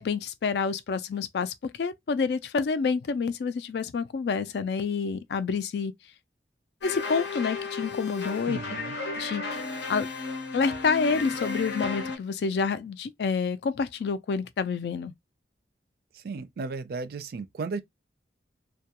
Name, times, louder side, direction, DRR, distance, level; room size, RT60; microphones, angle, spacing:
voice 1, 0.0-5.9 6.8-8.6 9.1-9.4 9.9-10.1 10.5-15.1, left 5 dB, 65° left, 0.3 m, -28 dB
sound 1, 6.8-12.2, left 4 dB, 85° left, 0.8 m, -33 dB
voice 2, 8.5-9.0 16.1-17.8, right 4 dB, 60° right, 0.4 m, -35 dB
2.2 x 2.2 x 2.8 m
head